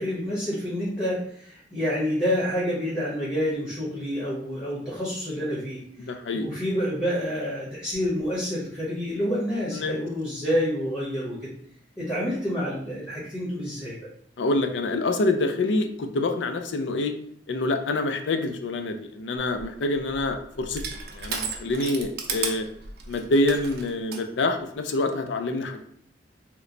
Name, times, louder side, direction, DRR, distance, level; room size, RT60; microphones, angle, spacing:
voice 1, 0.0-5.8 6.3-11.5 12.0-14.0, equal, 15° left, -8 dB, 1.0 m, -28 dB
voice 2, 6.0-6.5 9.7-10.0 14.4-17.1 17.5-22.7 23.1-25.8, left 2 dB, 80° left, 6 dB, 0.4 m, -26 dB
Crushing, 19.6-24.3, right 5 dB, 60° right, 0.5 m, -35 dB
2.9 x 2.1 x 3.8 m, 0.64 s
head